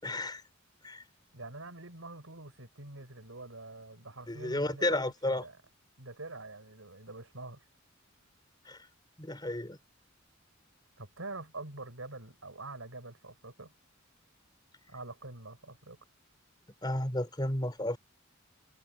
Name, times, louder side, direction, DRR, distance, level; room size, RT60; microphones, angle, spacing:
voice 1, 0.0-0.4 0.8-1.0 4.3-5.4 8.7-8.8 9.2-9.8 16.8-18.0, left 1 dB, 20° left, 4.5 m, -32 dB
voice 2, 1.3-5.6 6.0-7.6 11.0-13.7 14.9-16.0, right 2 dB, 80° right, 5.0 m, -45 dB
head